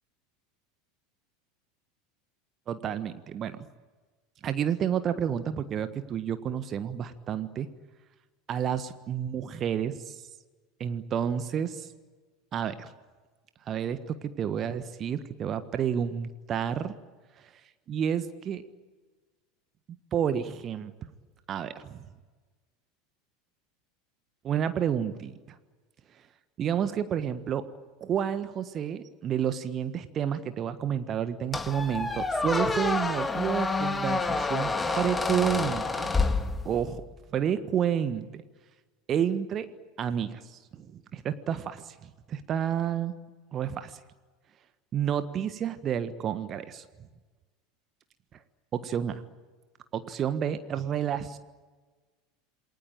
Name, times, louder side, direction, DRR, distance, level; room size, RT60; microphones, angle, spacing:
voice 1, 2.7-3.6 4.4-7.7 8.5-10.2 10.8-11.9 12.5-12.9 13.7-16.9 17.9-18.6 20.1-20.9 21.5-22.1 24.4-25.3 26.6-27.6 28.0-36.1 36.6-37.0 37.3-38.4 39.1-39.7 40.0-43.1 43.5-44.0 44.9-46.8 48.7-49.2 49.9-51.4, right 9 dB, 35° right, 11 dB, 1.5 m, -30 dB
Squeak, 31.5-37.0, left 3 dB, 15° left, 1.9 m, -28 dB
28.5 x 21.5 x 9.0 m, 1.3 s
figure-of-eight pair, 75°, 0 cm